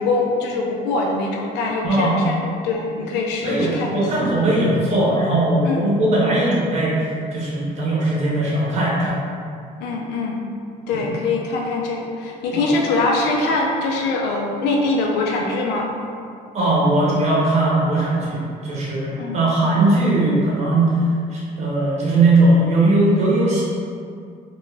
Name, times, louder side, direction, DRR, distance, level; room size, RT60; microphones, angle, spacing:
voice 1, 0.0-4.0 5.6-5.9 9.8-10.4 10.9-15.9 19.2-19.4, left 3 dB, 90° left, -1 dB, 0.5 m, -23 dB
voice 2, 1.8-2.3 3.4-9.2 10.9-11.1 12.5-12.7 16.5-21.0 21.3-23.6, right 2 dB, 40° right, -6 dB, 0.7 m, -19 dB
2.3 x 2.3 x 3.2 m, 2.3 s
cardioid pair, 110°, 17 cm